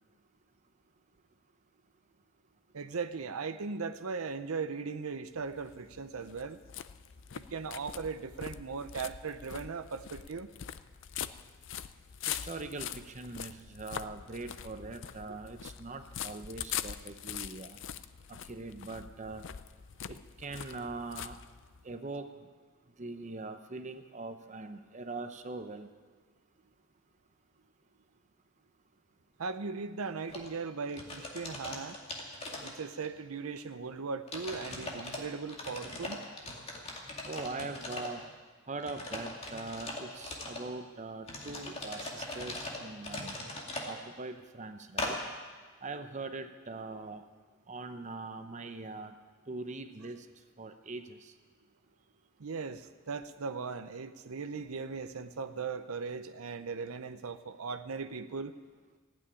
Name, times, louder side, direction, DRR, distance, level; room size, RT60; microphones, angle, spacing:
voice 1, 2.7-6.6 7.3-10.5 15.3-15.4 29.4-32.0 32.6-36.2 52.4-58.5, right 4 dB, 85° right, 10 dB, 0.7 m, -38 dB
sound 1, 5.4-21.9, left 9 dB, 60° left, 0.5 m, -43 dB
voice 2, 12.3-17.8 18.5-19.4 20.1-21.4 21.8-22.3 23.0-25.9 37.2-38.2 38.7-43.4 43.8-45.2 45.8-47.2 47.7-49.1 49.5-50.3 50.6-51.3, right 3 dB, 35° right, 8 dB, 0.8 m, -42 dB
sound 2, 30.3-30.5 30.9-33.2 33.6-33.7 34.3-35.2 35.5-38.2 38.8-40.6 41.3-43.9 45.0-45.1, left 2 dB, 30° left, 2.3 m, -40 dB
15.5 x 9.1 x 10.0 m, 1.4 s
head